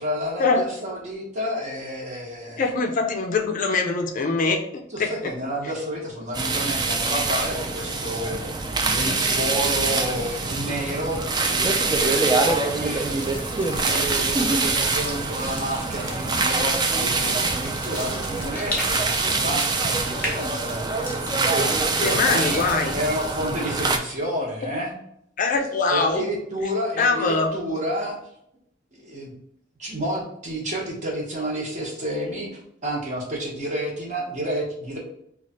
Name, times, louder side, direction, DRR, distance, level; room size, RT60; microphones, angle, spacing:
voice 1, 0.0-2.7 4.9-8.4 8.8-13.3 13.7-17.1 17.4-22.6 22.9-24.9 25.9-28.2 28.9-29.3 29.8-35.0, equal, 40° right, -2 dB, 1.0 m, -30 dB
voice 2, 2.6-5.1 10.7-10.8 17.2-17.5 21.9-23.0 25.4-26.2 27.0-27.5, left 4 dB, 45° left, 3 dB, 0.4 m, -23 dB
sound 1, 6.3-24.0, right 3 dB, 20° right, 0.3 m, -24 dB
sound 2, 9.0-18.5, right 1 dB, 85° right, 1.2 m, -40 dB
sound 3, 13.0-24.2, left 1 dB, 10° left, 0.7 m, -37 dB
3.1 x 2.4 x 4.1 m, 0.75 s
head